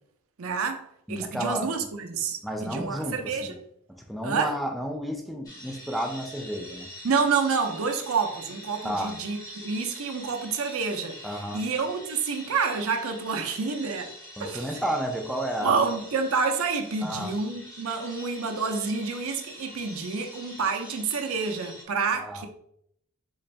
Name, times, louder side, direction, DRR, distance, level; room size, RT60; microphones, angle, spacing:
voice 1, 0.4-3.6 4.2-4.6 7.0-11.2 11.5-14.1 14.4-14.8 15.6-22.5, right 5 dB, 70° right, 0.5 m, -28 dB
voice 2, 1.1-1.6 2.4-3.6 4.0-6.9 8.8-9.1 11.2-11.6 14.4-15.8 17.0-17.3 22.2-22.5, equal, ahead, 0.4 m, -31 dB
sound 1, 5.4-21.8, left 1 dB, 15° left, 0.8 m, -45 dB
3.9 x 3.2 x 2.5 m
head